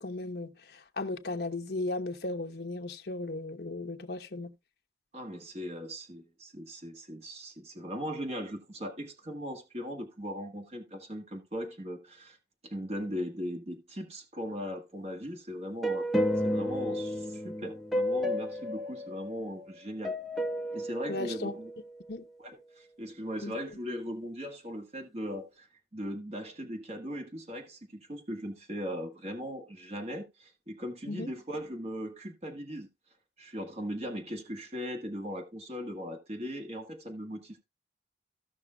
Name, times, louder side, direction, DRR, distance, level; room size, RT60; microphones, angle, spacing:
voice 1, 0.0-4.5 21.1-21.6 22.1-22.2 23.4-23.6 31.1-31.3, left 2 dB, 65° left, 0.9 m, -36 dB
voice 2, 5.1-12.4 12.7-16.1 16.4-20.1 20.7-21.7 22.4-25.7 25.9-32.9 33.4-37.6, equal, 35° right, 1.6 m, -39 dB
sound 1, 15.8-19.7 20.0-22.1, equal, ahead, 1.0 m, -32 dB
15.5 x 6.0 x 2.3 m
head